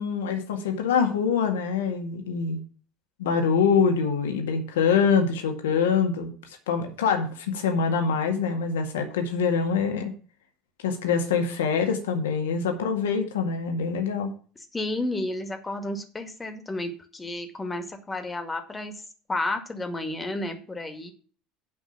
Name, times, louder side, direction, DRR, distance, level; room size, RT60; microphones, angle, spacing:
voice 1, 0.0-2.6 3.2-6.3 6.7-10.1 10.8-14.3, left 6 dB, 75° left, 5 dB, 1.8 m, -24 dB
voice 2, 14.7-18.9 19.3-21.1, left 2 dB, 20° left, 7 dB, 2.0 m, -31 dB
8.6 x 5.4 x 7.2 m, 0.41 s
figure-of-eight pair, 70°, 0 cm